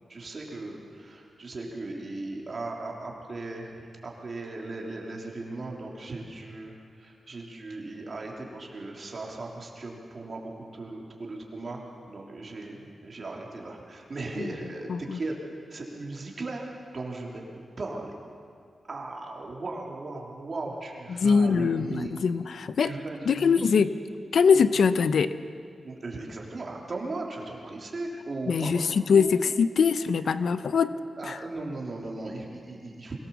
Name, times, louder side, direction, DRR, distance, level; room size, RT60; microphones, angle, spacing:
voice 1, 0.1-11.8 12.1-15.3 15.7-16.6 16.9-17.4 17.8-18.1 18.8-22.1 22.8-23.8 24.5-24.6 25.8-29.5 31.2-33.1, right 2 dB, 45° right, -1 dB, 3.5 m, -37 dB
voice 2, 21.1-22.9 23.3-23.9 24.3-25.3 28.5-31.0 31.2-31.4, left 6 dB, 80° left, 13 dB, 0.7 m, -23 dB
23.0 x 18.0 x 7.2 m, 2.3 s
wide cardioid pair, 115°, 0 cm